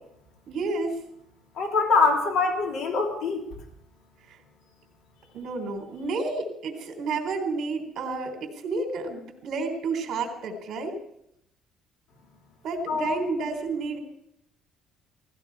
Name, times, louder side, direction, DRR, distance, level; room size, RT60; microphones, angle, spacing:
voice 1, 0.5-1.0 4.3-4.4 5.3-11.0 12.6-14.0, right 3 dB, 50° right, 4 dB, 3.7 m, -30 dB
voice 2, 1.6-3.4 12.9-13.2, left 4 dB, 70° left, 2 dB, 3.4 m, -24 dB
17.5 x 16.0 x 4.8 m, 0.76 s
cardioid pair, 150°, 0 cm